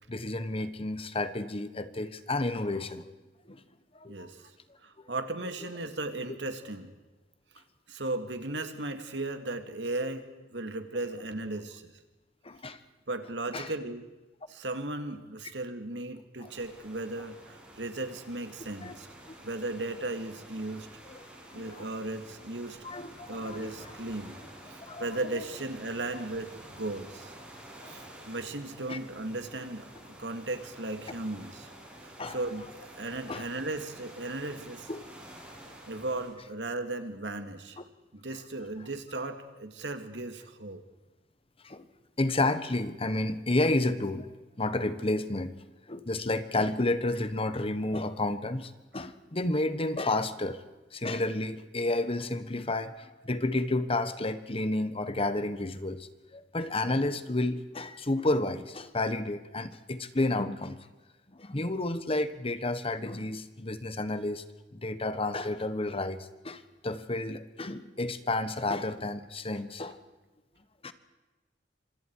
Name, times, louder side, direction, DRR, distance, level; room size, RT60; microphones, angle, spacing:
voice 1, 0.1-3.1 3.5-3.6 3.9-4.3 5.0-5.1 6.3-6.4 12.4-12.8 13.5-13.7 16.4-16.5 18.8-18.9 19.3-19.4 21.1-21.9 22.8-23.9 24.8-25.2 27.8-27.9 28.9-29.0 32.2-32.4 33.3-33.5 34.9-35.0 37.8-37.9 41.6-41.9 42.2-45.6 45.9-50.6 50.9-60.8 61.3-64.4 64.7-70.0 70.8-70.9, left 2 dB, 35° left, 12 dB, 1.3 m, -31 dB
voice 2, 4.1-4.5 4.8-6.9 7.9-10.2 10.5-11.9 13.1-14.0 14.5-19.1 19.4-20.9 21.5-22.8 23.3-24.4 24.7-27.3 27.8-29.9 30.2-31.7 32.0-34.9 35.8-37.8 38.1-40.8, right 2 dB, 75° right, 8 dB, 2.2 m, -36 dB
sound 1, 16.4-36.3, right 1 dB, 5° right, 7.5 m, -50 dB
26.5 x 25.5 x 4.7 m, 1.2 s
head